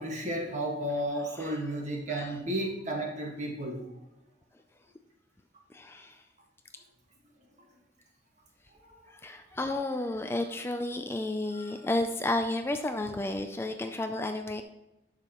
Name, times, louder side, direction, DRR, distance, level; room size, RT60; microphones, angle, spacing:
voice 1, 0.0-3.9 8.8-8.9 11.5-11.6, right 1 dB, 40° right, 0 dB, 1.6 m, -33 dB
voice 2, 5.7-6.2 9.1-14.6, left 2 dB, 15° left, 6 dB, 0.4 m, -32 dB
10.5 x 6.7 x 3.0 m, 0.91 s
head